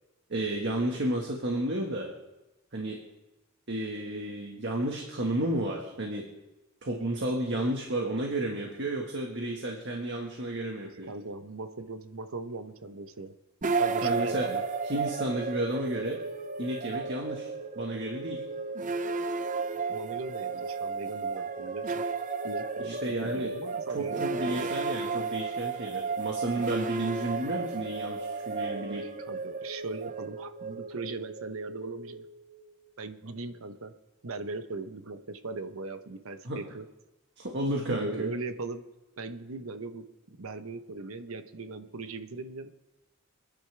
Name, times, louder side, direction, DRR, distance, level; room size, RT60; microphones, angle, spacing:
voice 1, 0.3-2.1 2.7-3.0 3.7-6.2 6.8-11.1 14.0-14.5 14.8-16.2 16.6-18.4 22.8-23.5 23.9-29.0 36.4-36.6 37.4-38.3, right 1 dB, 55° right, 0 dB, 1.6 m, -32 dB
voice 2, 10.8-13.4 13.8-14.6 19.9-22.0 22.4-24.7 28.9-32.3 33.0-33.9 34.2-36.9 37.9-38.8 39.2-42.7, right 3 dB, 75° right, 9 dB, 0.9 m, -39 dB
sound 1, 13.6-32.7, right 4 dB, 35° right, 0.6 m, -33 dB
28.0 x 10.5 x 3.4 m, 1.0 s
head